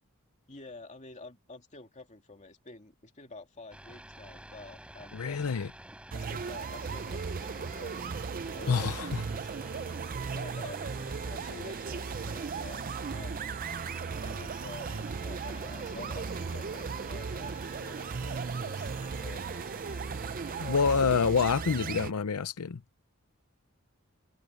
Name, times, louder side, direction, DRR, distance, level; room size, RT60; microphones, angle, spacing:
voice 1, 0.5-5.5 6.1-7.9 8.5-9.9 10.3-12.9 13.1-13.6 14.2-19.6, left 3 dB, 35° left, 2.7 m, -49 dB
sound 1, 3.7-20.7, right 1 dB, 5° right, 5.1 m, -50 dB
voice 2, 5.1-5.7 8.7-9.2 20.6-22.8, left 5 dB, 90° left, 0.6 m, -27 dB
sound 2, 6.1-22.1, right 5 dB, 40° right, 0.5 m, -36 dB
head